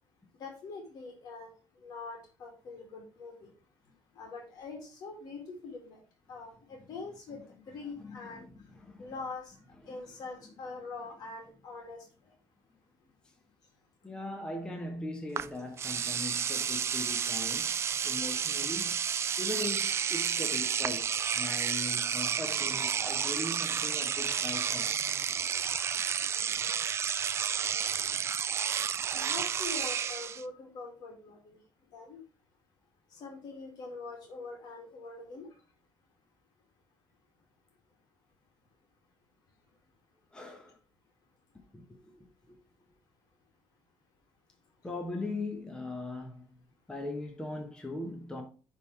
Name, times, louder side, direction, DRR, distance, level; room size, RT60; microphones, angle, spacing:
voice 1, 0.4-1.5 1.8-3.5 4.2-6.0 6.3-8.5 9.0-9.5 9.9-12.0 29.1-31.6 31.9-32.2 33.1-35.5, left 3 dB, 65° left, 2.0 m, -43 dB
voice 2, 8.0-9.1 9.8-10.0 14.0-19.0 19.4-24.9 40.3-40.8 41.7-42.6 44.8-46.5 46.9-48.4, left 2 dB, 10° left, 1.0 m, -40 dB
Engine / Domestic sounds home sounds, 15.4-15.5 15.8-30.4, right 7 dB, 35° right, 0.3 m, -31 dB
9.1 x 3.6 x 3.1 m
cardioid pair, 115°, 7 cm